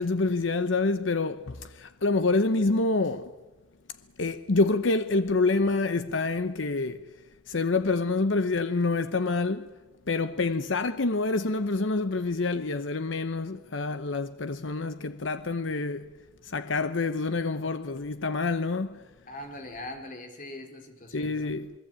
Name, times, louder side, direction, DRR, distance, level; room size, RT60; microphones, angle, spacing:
voice 1, 0.0-3.3 4.2-7.0 7.5-9.7 10.1-16.1 16.5-19.0 21.1-21.7, left 3 dB, 75° left, 0.9 m, -27 dB
voice 2, 19.3-21.5, left 1 dB, 45° left, 3.7 m, -41 dB
28.0 x 21.0 x 8.8 m
head